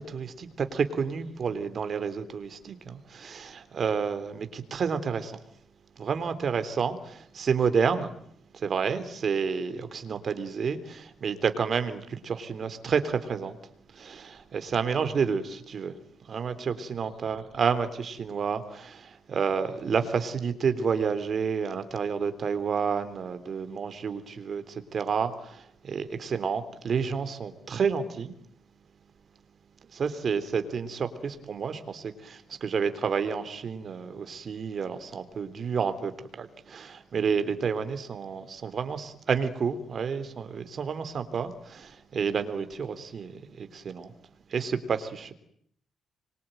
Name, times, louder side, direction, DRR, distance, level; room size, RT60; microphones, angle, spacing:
voice 1, 0.0-5.4 6.0-8.1 8.5-13.5 13.9-15.9 16.3-28.3 29.9-36.1 36.4-43.3 43.6-44.1 44.5-45.3, right 6 dB, 50° right, 3.5 m, -30 dB
26.0 x 24.0 x 9.2 m
cardioid pair, 115°, 0 cm